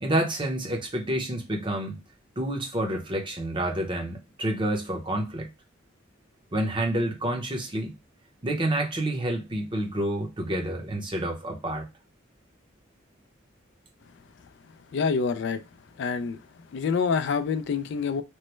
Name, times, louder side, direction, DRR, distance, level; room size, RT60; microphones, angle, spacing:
voice 1, 0.0-2.0 2.4-5.5 6.5-7.9 8.4-11.9, right 1 dB, 25° right, 0.8 m, -28 dB
voice 2, 14.9-15.6 16.0-16.4 16.7-18.2, left 5 dB, 65° left, 0.3 m, -26 dB
3.1 x 2.1 x 3.0 m
head